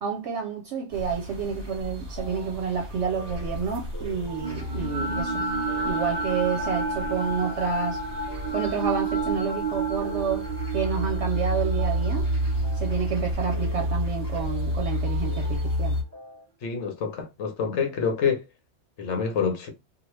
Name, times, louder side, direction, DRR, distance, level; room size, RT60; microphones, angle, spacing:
voice 1, 0.0-5.5 5.8-8.0 8.5-12.3 12.7-16.0, right 6 dB, 70° right, 0.9 m, -29 dB
sound 1, 0.9-16.0, equal, 20° right, 1.3 m, -31 dB
sound 2, 2.1-16.5, right 1 dB, 15° left, 1.0 m, -46 dB
sound 3, 4.4-14.6, right 4 dB, 50° right, 0.4 m, -31 dB
voice 2, 16.6-18.4 19.0-19.7, left 6 dB, 65° left, 1.1 m, -27 dB
2.9 x 2.4 x 3.1 m
omnidirectional pair, 1.3 m